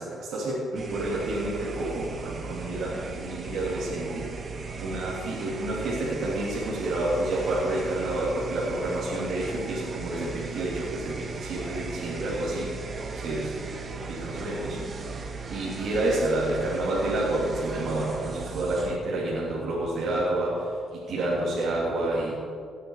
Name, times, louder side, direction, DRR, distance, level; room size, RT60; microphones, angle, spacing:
voice 1, 0.0-4.3 4.8-12.7 13.1-13.6 13.9-14.8 15.5-22.3, right 1 dB, 70° right, -7 dB, 3.2 m, -29 dB
sound 1, 0.7-19.0, right 4 dB, 40° right, 1.7 m, -37 dB
18.5 x 9.3 x 4.9 m, 2.3 s
cardioid pair, 90°, 0 cm